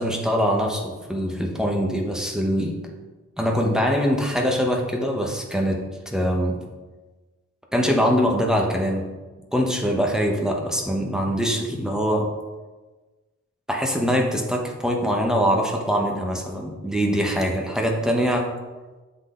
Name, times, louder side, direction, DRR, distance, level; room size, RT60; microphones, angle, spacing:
voice 1, 0.0-2.8 3.4-6.7 7.7-9.1 9.5-12.3 13.7-18.5, equal, ahead, 0 dB, 0.9 m, -23 dB
7.3 x 4.1 x 3.7 m, 1.2 s
wide cardioid pair, 115°, 30 cm